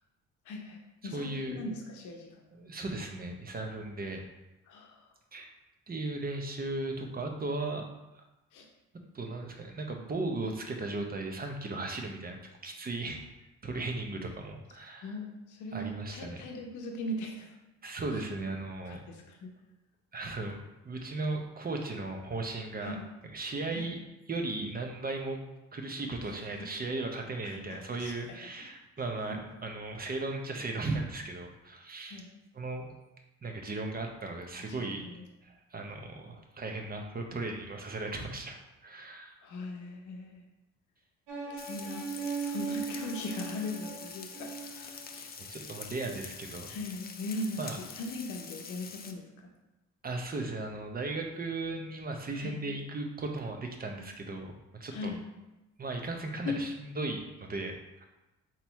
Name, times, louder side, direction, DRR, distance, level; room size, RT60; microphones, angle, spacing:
voice 1, 0.5-2.5 4.7-5.1 8.5-8.7 15.0-17.6 18.1-18.2 18.8-19.5 22.8-23.1 23.7-24.0 27.4-28.4 29.3-29.4 32.1-32.3 34.8-35.2 39.4-40.4 41.5-42.1 42.4-45.3 46.7-49.5 52.4-52.6 54.9-55.2 56.4-56.7, left 2 dB, 80° left, 2 dB, 0.8 m, -39 dB
voice 2, 1.1-1.6 2.5-4.2 5.3-5.5 5.9-7.9 8.1-8.2 9.1-13.2 13.6-15.1 15.7-16.4 17.8-19.0 20.1-20.6 20.8-23.0 23.3-24.0 24.3-25.4 25.7-32.2 32.5-32.9 33.4-35.0 35.4-39.4 45.4-46.7 47.6-47.8 50.0-55.1 55.8-58.0, right 2 dB, 30° right, 3 dB, 0.8 m, -36 dB
sound 1, 41.3-45.1, right 5 dB, 85° right, 0.9 m, -38 dB
Frying (food), 41.6-49.1, left 5 dB, 30° left, 0.5 m, -46 dB
3.9 x 3.0 x 4.5 m, 0.98 s
cardioid pair, 90°, 30 cm